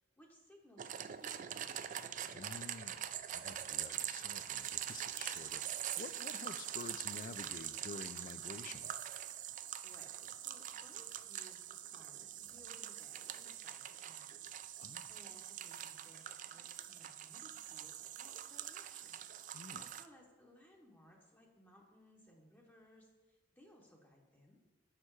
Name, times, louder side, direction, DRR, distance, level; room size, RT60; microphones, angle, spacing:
voice 1, 0.2-1.8 9.6-14.4 14.7-24.6, left 1 dB, 10° left, -1 dB, 0.8 m, -63 dB
sound 1, 0.8-20.1, right 11 dB, 45° right, 0.3 m, -44 dB
voice 2, 2.3-8.9 14.8-15.1 19.5-19.9, left 4 dB, 45° left, 13 dB, 0.4 m, -50 dB
6.6 x 5.4 x 4.6 m, 1.3 s
head